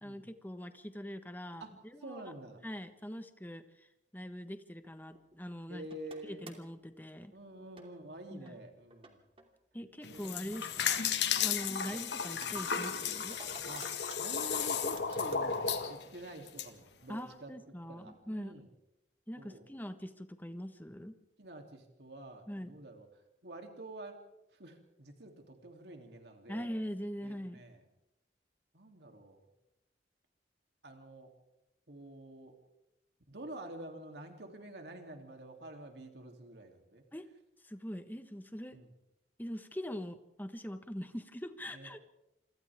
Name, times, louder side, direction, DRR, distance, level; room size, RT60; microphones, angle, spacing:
voice 1, 0.0-2.2 2.6-5.9 6.2-7.3 8.3-8.6 9.7-11.1 11.4-13.4 17.1-18.5 19.3-21.2 22.5-22.8 26.5-27.6 37.1-37.3 37.6-38.8 39.4-42.0, equal, 10° left, 8 dB, 1.4 m, -42 dB
voice 2, 2.0-2.6 5.7-6.5 7.3-9.2 10.1-10.2 11.8-12.0 13.6-17.5 17.9-18.7 19.4-19.7 21.4-23.1 23.4-24.2 24.5-26.7 27.2-27.8 28.7-29.4 30.8-31.3 31.9-32.6 33.3-37.0 38.7-38.9 41.7-42.0, right 1 dB, 70° right, 3 dB, 3.2 m, -48 dB
sound 1, 4.8-5.4 5.9-6.7 7.2-7.3 7.8-8.2 8.5-8.6 8.9-9.5 10.0-11.1 11.4-12.5 12.8-15.8 16.1-16.2 16.7-16.8 17.0-17.1 18.0-18.2 18.6-18.7, right 3 dB, 30° right, 2.8 m, -53 dB
sound 2, 10.0-16.7, left 7 dB, 80° left, 1.8 m, -34 dB
28.5 x 25.0 x 3.7 m, 0.90 s
head